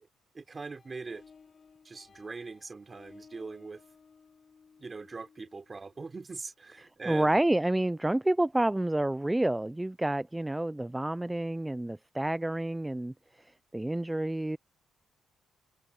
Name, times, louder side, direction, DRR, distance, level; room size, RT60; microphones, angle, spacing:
voice 1, 0.3-1.2 1.8-3.8 4.8-7.4, right 4 dB, 30° right, 3.6 m, -42 dB
sound 1, 0.7-6.2, left 5 dB, 40° left, 5.4 m, -59 dB
voice 2, 7.1-14.6, right 1 dB, 10° right, 0.4 m, -29 dB
cardioid pair, 90°, 0 cm